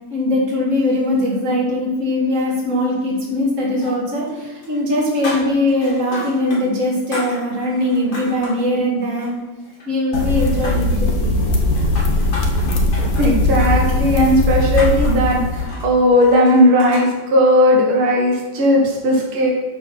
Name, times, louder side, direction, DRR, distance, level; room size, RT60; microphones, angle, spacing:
voice 1, 0.1-9.4 9.9-11.4, left 1 dB, 35° right, -3 dB, 2.6 m, -20 dB
sound 1, 3.8-4.4 4.6-6.6 6.9-8.7 9.1-9.9 10.1-11.0 11.6-17.1, left 1 dB, 80° left, 4.0 m, -33 dB
sound 2, 10.1-15.7, left 1 dB, 50° left, 1.4 m, -19 dB
voice 2, 13.2-19.5, left 1 dB, 80° right, -1 dB, 2.4 m, -16 dB
12.0 x 4.3 x 6.0 m, 1.3 s
omnidirectional pair, 2.3 m